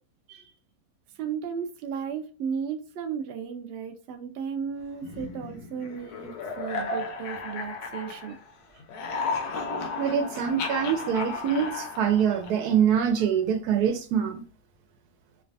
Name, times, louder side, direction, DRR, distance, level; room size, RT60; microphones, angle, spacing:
voice 1, 1.2-8.4, right 7 dB, 65° right, 0.6 m, -34 dB
sound 1, 5.0-8.5 8.8-12.8, left 3 dB, 90° left, 1.2 m, -34 dB
voice 2, 10.0-14.4, right 8 dB, 85° right, 1.2 m, -24 dB
3.1 x 2.3 x 2.5 m
omnidirectional pair, 1.6 m